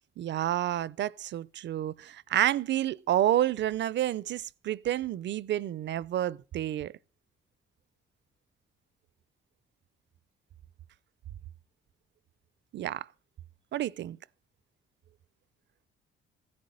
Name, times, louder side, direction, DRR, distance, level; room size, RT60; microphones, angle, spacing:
voice 1, 0.2-6.9 12.7-13.1 13.7-14.2, right 12 dB, 65° right, 0.6 m, -29 dB
15.5 x 9.6 x 6.5 m
cardioid pair, 90°, 20 cm